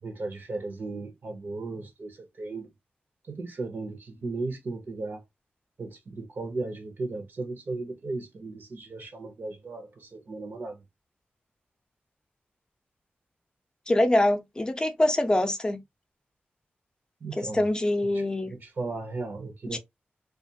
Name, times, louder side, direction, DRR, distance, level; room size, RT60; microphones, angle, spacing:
voice 1, 0.0-2.7 3.2-5.2 5.8-10.8 17.2-17.7 18.1-18.2 18.5-19.8, right 3 dB, 65° right, 0.8 m, -36 dB
voice 2, 13.9-15.8 17.4-18.5 19.7-19.8, left 1 dB, 20° left, 0.5 m, -24 dB
2.4 x 2.4 x 2.7 m
wide cardioid pair, 100°, 4 cm